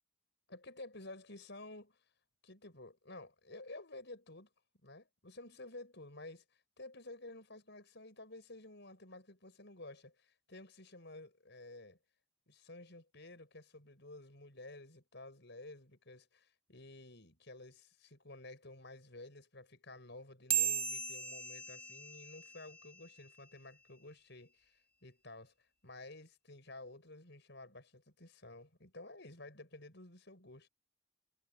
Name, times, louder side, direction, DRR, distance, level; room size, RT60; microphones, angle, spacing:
voice 1, 0.5-2.0 2.4-4.5 4.8-6.4 6.8-12.0 12.5-25.5 25.8-30.7, left 2 dB, 55° left, 6.8 m, -52 dB
sound 1, 20.5-23.3, right 9 dB, 30° right, 3.3 m, -37 dB
head